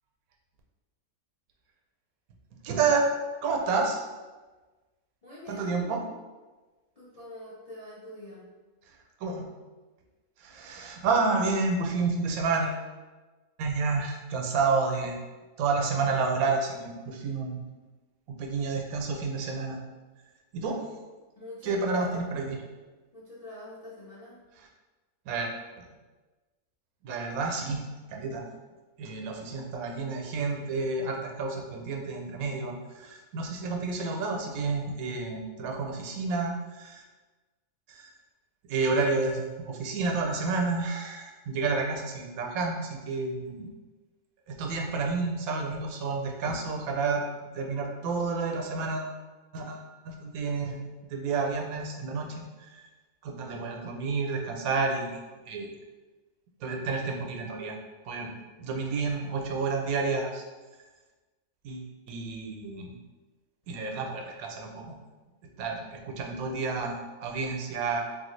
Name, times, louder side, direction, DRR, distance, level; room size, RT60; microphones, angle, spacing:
voice 1, 2.6-3.1 3.4-4.0 5.6-6.0 8.9-9.4 10.4-12.8 13.6-15.2 15.6-17.6 18.3-19.8 20.5-20.8 21.6-22.6 25.3-25.5 25.8-25.9 27.0-27.8 28.1-28.5 29.0-37.0 37.9-38.1 38.7-43.7 44.5-47.2 47.5-49.2 49.5-50.8 51.1-52.9 53.2-55.7 56.6-57.8 58.0-58.3 58.6-60.4 61.6-63.0 63.7-65.0 65.6-68.1, right 4 dB, 90° right, 2 dB, 1.0 m, -30 dB
voice 2, 5.2-6.1 7.0-8.4 21.4-22.4 23.1-24.4, left 1 dB, 55° left, -7 dB, 0.4 m, -45 dB
3.5 x 2.3 x 3.1 m, 1.2 s
omnidirectional pair, 1.5 m